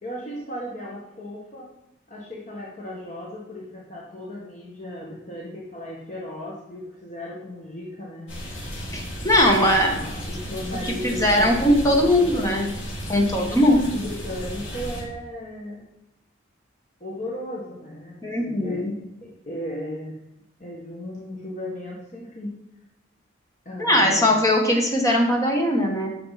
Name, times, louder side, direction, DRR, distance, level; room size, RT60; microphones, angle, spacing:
voice 1, 0.0-1.7 2.1-8.3 9.5-12.6 13.4-15.8 17.0-20.2 20.6-22.5 23.6-24.3, equal, 40° left, -4 dB, 1.6 m, -36 dB
sound 1, 8.3-15.0, equal, 75° left, 3.1 m, -34 dB
voice 2, 8.9-10.0 10.8-12.7 13.1-13.9 18.2-18.9 23.8-26.1, left 1 dB, 15° left, 1 dB, 1.5 m, -20 dB
9.9 x 6.7 x 4.2 m, 0.90 s
head